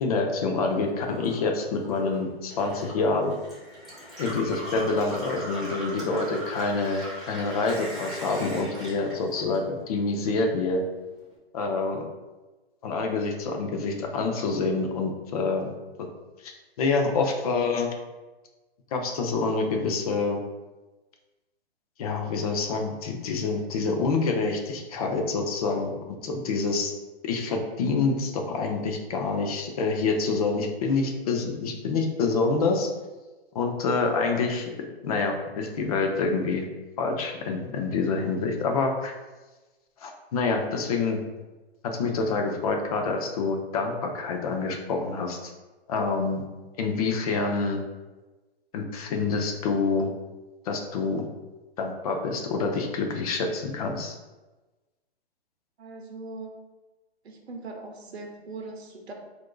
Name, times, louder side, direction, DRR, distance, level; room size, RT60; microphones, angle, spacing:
voice 1, 0.0-3.3 4.2-10.8 11.5-12.0 12.8-15.7 16.4-16.5 16.8-17.9 18.9-20.4 22.0-26.9 27.2-32.9 33.5-34.7 35.0-36.7 37.0-39.1 40.0-41.2 41.8-45.5 45.9-46.4 46.8-47.8 48.7-50.1 50.6-51.3 51.8-54.2, left 4 dB, 35° left, 3 dB, 0.5 m, -27 dB
Gurgling / Water tap faucet / Sink (filling or washing), 0.5-10.1 10.4-11.3, right 1 dB, ahead, 1.1 m, -39 dB
voice 2, 55.8-56.6 57.2-59.1, right 3 dB, 75° right, 2 dB, 0.8 m, -40 dB
4.2 x 2.6 x 2.3 m, 1.2 s
hypercardioid pair, 135°, 32 cm